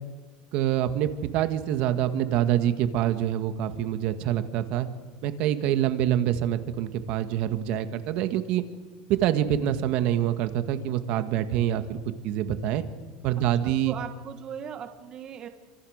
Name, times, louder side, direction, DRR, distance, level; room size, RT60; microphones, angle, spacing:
voice 1, 0.5-4.9 5.2-8.6 9.1-12.0 12.2-12.8 13.2-13.9, right 11 dB, 60° right, 9 dB, 1.9 m, -26 dB
voice 2, 13.4-15.5, right 8 dB, 35° right, 7 dB, 1.7 m, -39 dB
29.0 x 26.0 x 6.6 m, 1.4 s
supercardioid pair, 130°, 2 cm